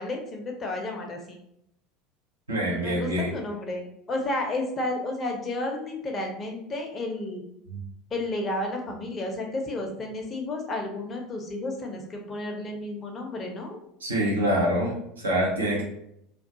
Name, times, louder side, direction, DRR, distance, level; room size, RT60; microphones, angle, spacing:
voice 1, 0.0-1.4 2.8-7.4 8.1-13.8, left 2 dB, 30° left, 2 dB, 0.5 m, -32 dB
voice 2, 2.5-3.3 7.7-7.8 14.0-15.8, equal, 80° right, -3 dB, 0.7 m, -25 dB
2.3 x 2.2 x 2.7 m, 0.77 s
figure-of-eight pair, 75°, 0 cm